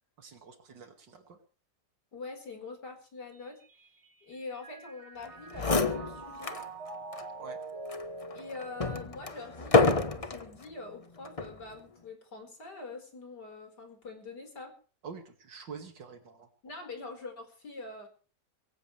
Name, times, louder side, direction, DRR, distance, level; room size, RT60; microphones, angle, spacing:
voice 1, 0.2-1.4 7.4-7.6 15.0-16.5, right 5 dB, 90° right, 5 dB, 2.9 m, -46 dB
voice 2, 2.1-3.6 4.2-6.6 8.3-14.7 16.6-18.1, left 3 dB, 65° left, 4 dB, 5.3 m, -44 dB
Mallet percussion, 3.3-9.8, right 3 dB, 40° right, 1.7 m, -45 dB
sound 1, 5.2-5.3 5.5-6.7 7.1-7.2 7.9-10.5 11.3-11.6, left 3 dB, 25° left, 1.0 m, -28 dB
23.0 x 16.0 x 3.3 m, 0.38 s
omnidirectional pair, 1.9 m